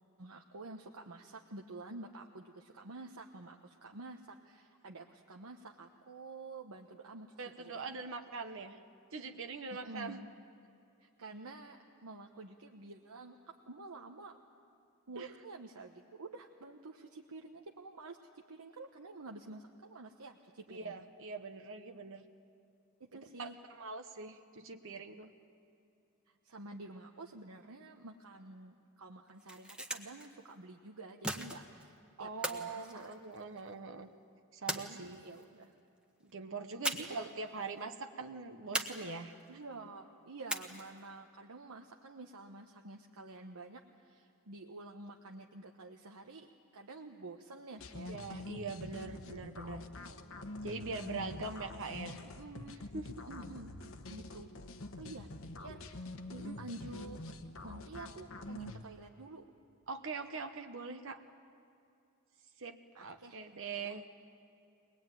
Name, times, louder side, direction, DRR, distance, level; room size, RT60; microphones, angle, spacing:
voice 1, 0.2-7.3 7.6-8.0 9.8-10.3 11.0-14.4 15.1-20.9 23.0-23.5 26.3-33.1 34.8-35.7 36.9-37.2 39.5-48.2 51.1-51.2 52.2-52.8 53.2-54.5 55.0-56.1 56.6-57.3 57.6-59.4 62.9-63.4 63.7-64.0, right 2 dB, 90° right, 2 dB, 1.1 m, -49 dB
voice 2, 7.4-8.8 9.1-10.2 15.1-15.3 20.7-22.2 23.1-25.3 32.2-34.1 34.5-35.2 36.2-39.3 48.1-49.8 50.6-52.2 52.9-53.1 56.3-56.6 59.9-61.2 62.6-64.1, right 4 dB, 60° right, 6 dB, 1.0 m, -43 dB
sound 1, 29.3-30.3 31.2-31.9 32.4-33.7 34.7-35.4 36.8-37.3 37.6-37.7 38.7-39.5 40.5-41.0, right 1 dB, 5° right, 1.2 m, -39 dB
sound 2, 47.8-58.8, left 2 dB, 65° left, 1.2 m, -46 dB
22.5 x 20.5 x 9.1 m, 2.6 s
head